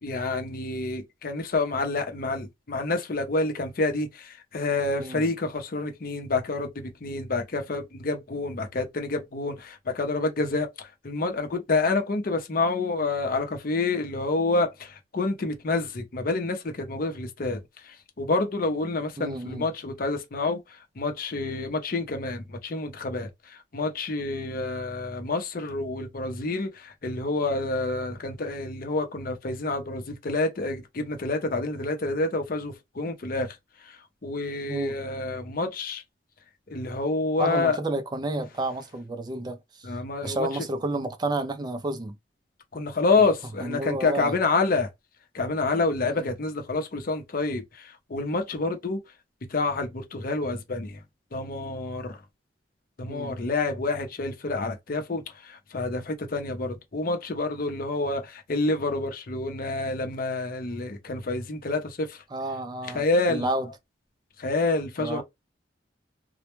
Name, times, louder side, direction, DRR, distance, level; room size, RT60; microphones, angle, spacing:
voice 1, 0.0-33.6 33.8-36.0 36.7-37.8 39.8-40.5 42.7-44.9 45.3-49.0 49.5-51.0 51.3-52.2 53.0-62.2 62.9-63.5 64.4-65.2, left 3 dB, 50° left, 0.6 m, -28 dB
voice 2, 19.2-19.7 34.7-35.0 37.4-39.9 40.2-42.2 43.6-44.3 46.0-46.3 53.1-53.4 62.3-63.7 65.0-65.2, right 2 dB, 25° right, 0.3 m, -31 dB
2.1 x 2.1 x 2.9 m
head